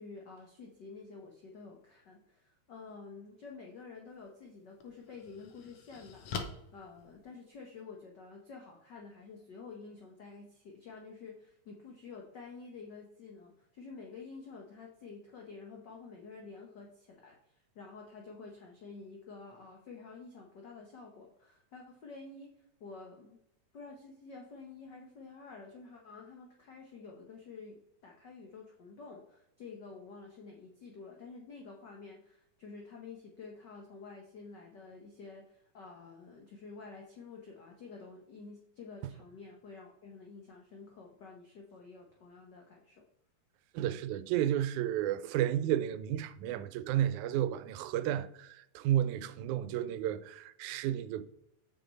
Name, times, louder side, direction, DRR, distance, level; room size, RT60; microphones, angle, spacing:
voice 1, 0.0-22.5 22.8-23.4 23.7-43.0, left 4 dB, 90° left, 0.9 m, -50 dB
sound 1, 4.1-4.2 4.8-7.8, left 5 dB, 65° left, 1.6 m, -44 dB
voice 2, 43.7-51.2, right 11 dB, 85° right, 1.9 m, -32 dB
7.8 x 6.3 x 4.0 m
omnidirectional pair, 3.5 m